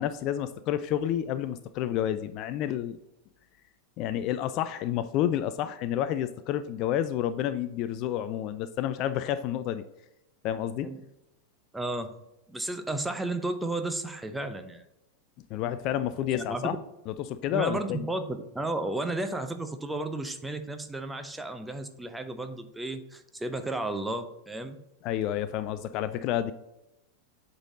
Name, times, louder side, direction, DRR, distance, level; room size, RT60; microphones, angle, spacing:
voice 1, 0.0-3.0 4.0-9.8 10.4-10.9 15.5-16.7 17.1-18.1 25.0-26.5, left 11 dB, 40° left, 12 dB, 0.3 m, -30 dB
voice 2, 11.7-12.1 12.5-14.8 16.3-16.8 17.5-24.8, right 2 dB, 5° right, 7 dB, 0.7 m, -33 dB
8.0 x 4.0 x 3.8 m, 0.91 s
figure-of-eight pair, 90°, 0 cm